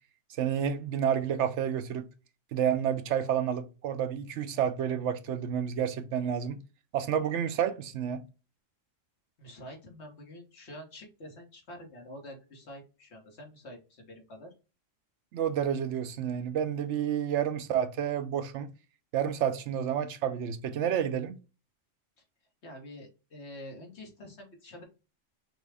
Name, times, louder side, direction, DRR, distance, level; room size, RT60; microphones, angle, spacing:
voice 1, 0.3-2.1 2.5-6.6 6.9-8.2 15.3-18.7 19.1-21.4, right 9 dB, 70° right, 0.8 m, -30 dB
voice 2, 9.4-14.5 22.6-24.8, left 1 dB, 55° left, 1.6 m, -47 dB
5.9 x 2.4 x 3.4 m
omnidirectional pair, 1.3 m